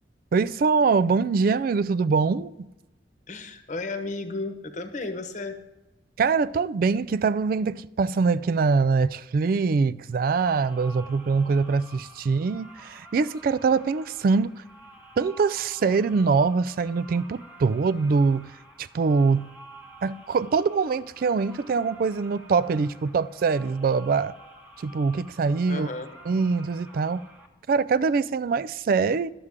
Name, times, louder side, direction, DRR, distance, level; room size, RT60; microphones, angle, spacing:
voice 1, 0.3-2.7 6.2-14.5 15.2-18.5 18.8-19.5 20.0-24.3 24.8-25.9 26.3-27.2 27.7-29.3, right 4 dB, 50° right, 0.3 m, -23 dB
voice 2, 3.3-5.6 25.7-26.1, left 3 dB, 45° left, 1.0 m, -33 dB
sound 1, 10.1-27.5, equal, 5° right, 1.2 m, -49 dB
11.0 x 8.0 x 3.6 m
head